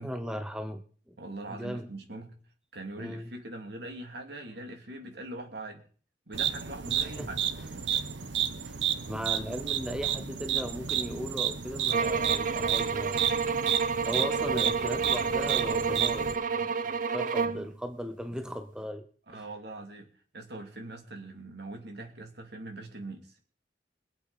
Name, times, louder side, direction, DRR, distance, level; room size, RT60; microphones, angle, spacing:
voice 1, 0.0-1.2 1.5-1.9 3.0-3.3 7.0-7.3 7.9-8.1 8.6-8.8 9.1-13.4 14.1-19.1 19.3-19.4, equal, 5° right, 8 dB, 0.8 m, -37 dB
voice 2, 1.2-2.4 2.7-5.8 6.3-7.4 19.3-20.1 20.3-23.4, right 2 dB, 65° right, 4 dB, 2.7 m, -42 dB
sound 1, 6.3-16.4, right 9 dB, 85° right, 1.0 m, -31 dB
sound 2, 11.9-17.7, right 5 dB, 50° right, 0.6 m, -29 dB
22.5 x 8.4 x 4.2 m, 0.42 s
head